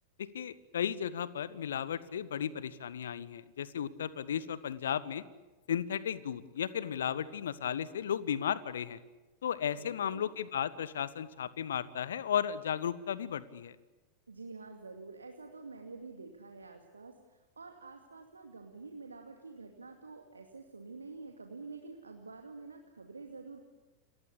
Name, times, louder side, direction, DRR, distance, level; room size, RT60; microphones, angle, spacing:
voice 1, 0.2-5.2 5.7-9.0 9.4-13.7, left 9 dB, 65° left, 17 dB, 1.3 m, -35 dB
voice 2, 9.8-10.3 14.3-23.6, right 3 dB, 75° right, 4 dB, 2.4 m, -48 dB
29.5 x 23.5 x 8.5 m, 1.2 s
figure-of-eight pair, 90°, 0 cm